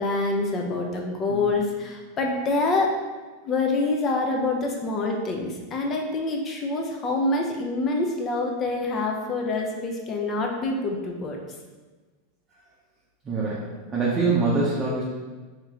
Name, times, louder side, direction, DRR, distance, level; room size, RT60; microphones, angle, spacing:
voice 1, 0.0-2.9 3.4-11.4, left 3 dB, 30° left, 1 dB, 0.7 m, -26 dB
voice 2, 13.2-15.0, right 3 dB, 25° right, -6 dB, 0.8 m, -24 dB
3.1 x 2.9 x 3.7 m, 1.3 s
hypercardioid pair, 115°, 0 cm